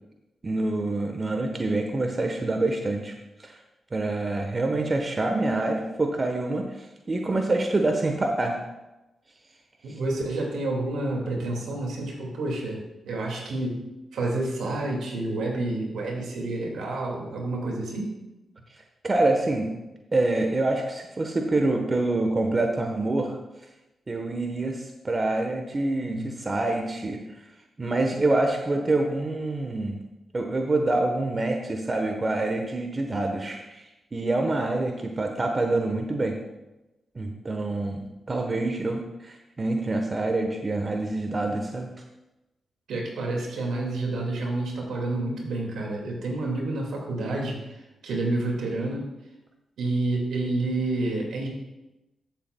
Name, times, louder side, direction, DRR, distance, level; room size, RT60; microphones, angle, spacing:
voice 1, 0.4-3.1 3.4-3.6 3.9-8.6 9.9-10.0 19.0-19.7 20.1-23.4 24.1-27.2 27.8-30.0 30.3-36.4 37.1-41.9, right 2 dB, 40° right, 3 dB, 1.1 m, -26 dB
voice 2, 9.8-13.8 14.1-18.1 26.1-26.3 42.9-49.1 49.8-51.5, right 2 dB, 80° right, 0 dB, 2.1 m, -29 dB
13.0 x 7.3 x 2.3 m, 0.98 s
supercardioid pair, 45°, 0 cm